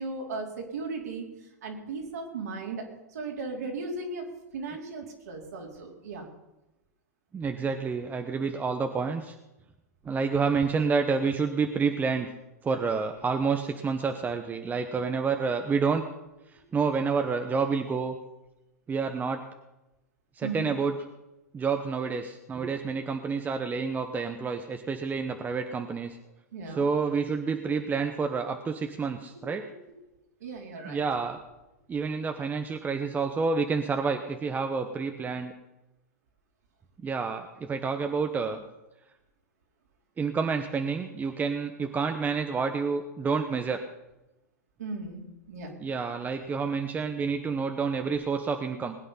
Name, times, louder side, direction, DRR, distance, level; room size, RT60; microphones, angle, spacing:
voice 1, 0.0-2.8 3.1-4.2 4.5-6.3 20.4-20.8 26.5-26.9 29.3-29.7 30.4-31.0 44.8-45.7, right 3 dB, 75° right, 0 dB, 4.2 m, -37 dB
voice 2, 7.3-9.3 10.0-12.3 12.6-16.0 16.5-18.2 18.9-19.4 20.4-21.0 21.5-26.2 26.7-29.6 30.8-31.4 31.9-35.5 37.0-38.6 40.2-43.8 45.8-49.0, right 5 dB, 20° right, 6 dB, 1.1 m, -29 dB
20.0 x 9.1 x 5.8 m, 0.96 s
hypercardioid pair, 100°, 9 cm